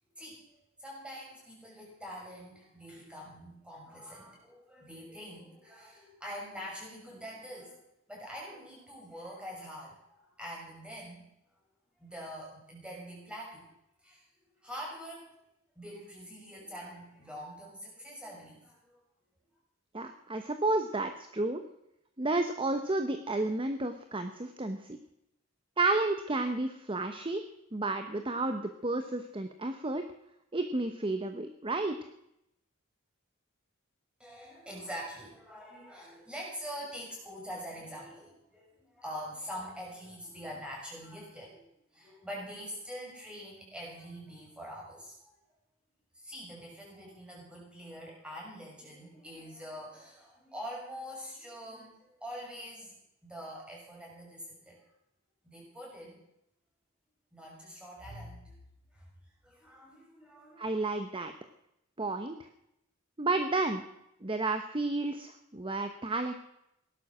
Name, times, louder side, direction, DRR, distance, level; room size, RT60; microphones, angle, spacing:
voice 1, 0.8-11.3 12.0-13.7 14.0-14.2 14.6-15.3 15.7-19.0 34.2-45.4 46.1-53.0 53.2-54.8 55.4-56.2 57.3-58.5 58.9-59.1 59.4-60.8, equal, 5° right, -3 dB, 6.3 m, -45 dB
voice 2, 19.9-21.6 22.2-25.0 25.8-27.4 27.7-30.0 30.5-32.0 60.6-61.3 62.0-62.4 63.2-63.8 64.2-66.3, right 2 dB, 25° right, 7 dB, 1.0 m, -31 dB
17.5 x 12.0 x 6.3 m, 0.81 s
head